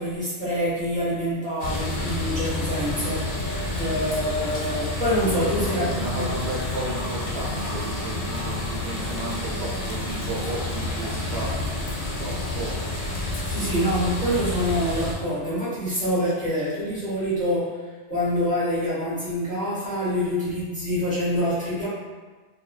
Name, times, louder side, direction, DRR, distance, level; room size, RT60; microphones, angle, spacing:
voice 1, 0.0-3.2 3.8-6.2 13.5-17.7 18.1-21.9, equal, 10° left, -12 dB, 0.9 m, -26 dB
sound 1, 1.6-15.1, left 2 dB, 75° left, 0.9 m, -29 dB
voice 2, 5.7-11.5 12.2-12.7, right 2 dB, 75° right, -5 dB, 0.9 m, -33 dB
2.5 x 2.1 x 2.3 m, 1.3 s
omnidirectional pair, 1.1 m